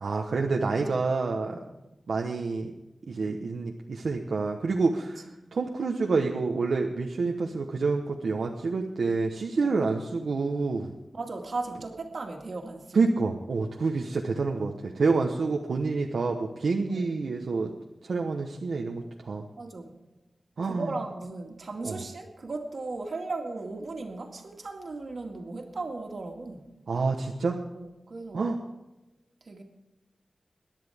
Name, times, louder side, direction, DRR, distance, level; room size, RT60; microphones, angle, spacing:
voice 1, 0.0-1.6 2.1-2.7 3.1-5.2 5.5-10.9 12.9-17.7 18.0-19.4 20.6-20.9 21.8-22.0 26.9-27.6 28.3-28.6, right 4 dB, 85° right, 2 dB, 1.0 m, -28 dB
voice 2, 0.6-1.0 1.5-1.8 9.7-9.8 11.1-13.0 16.9-17.1 19.6-19.9 20.6-26.7 27.7-28.5 29.5-29.6, right 3 dB, 60° right, 2 dB, 2.1 m, -37 dB
22.0 x 10.5 x 3.6 m, 1.0 s
wide cardioid pair, 120°, 0 cm